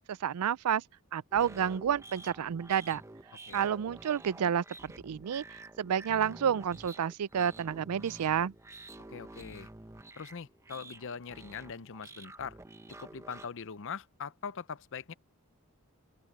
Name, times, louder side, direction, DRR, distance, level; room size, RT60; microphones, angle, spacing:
voice 1, 0.1-0.8 1.1-3.0 3.5-5.4 5.8-8.5, right 8 dB, 90° right, 0.4 m, -30 dB
sound 1, 1.3-13.5, right 2 dB, 15° right, 0.8 m, -50 dB
voice 2, 9.1-9.7 10.2-12.6 13.0-15.1, left 6 dB, 60° left, 0.7 m, -42 dB
open air
head